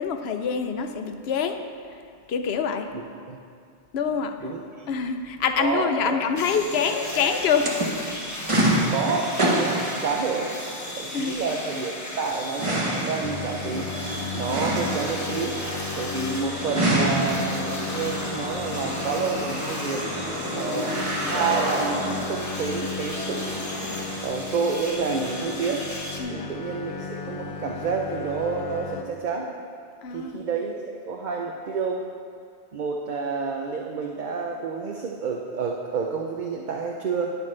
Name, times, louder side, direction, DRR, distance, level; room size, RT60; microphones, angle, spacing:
voice 1, 0.0-1.6 2.3-2.9 3.9-4.4 4.9-7.8 11.1-11.4 26.2-26.5 30.0-30.4, left 6 dB, 70° left, 7 dB, 0.9 m, -25 dB
voice 2, 4.4-4.9 5.6-6.2 8.9-10.5 11.0-13.9 14.3-15.6 15.9-20.1 20.6-23.7 24.2-25.9 26.3-29.5 30.1-32.0 32.7-37.4, right 5 dB, 50° right, 0 dB, 0.7 m, -29 dB
sound 1, 6.4-26.2, left 1 dB, 15° left, 0.9 m, -36 dB
sound 2, 6.8-24.3, right 1 dB, 30° right, 1.1 m, -29 dB
sound 3, 13.2-29.0, left 4 dB, 50° left, 0.4 m, -35 dB
11.0 x 9.4 x 3.3 m, 2.3 s
omnidirectional pair, 1.1 m